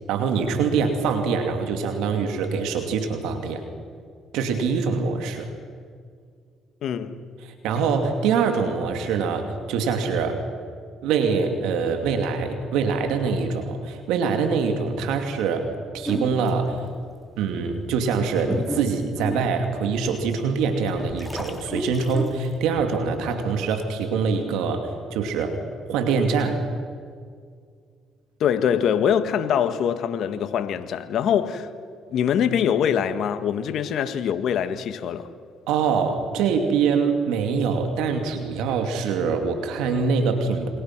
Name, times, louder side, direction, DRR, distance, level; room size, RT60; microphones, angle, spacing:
voice 1, 0.1-3.6 4.3-5.5 7.4-10.4 11.0-16.8 17.4-25.6 25.9-26.6 35.7-40.7, right 5 dB, 80° right, 2.7 m, -24 dB
voice 2, 6.8-7.2 28.4-31.7 32.1-35.3, left 8 dB, 65° left, 1.7 m, -23 dB
sound 1, 16.0-16.8 17.4-17.5 18.1-20.2 20.7-22.8, left 1 dB, 10° left, 3.0 m, -33 dB
28.0 x 25.0 x 6.1 m
supercardioid pair, 70°, 0 cm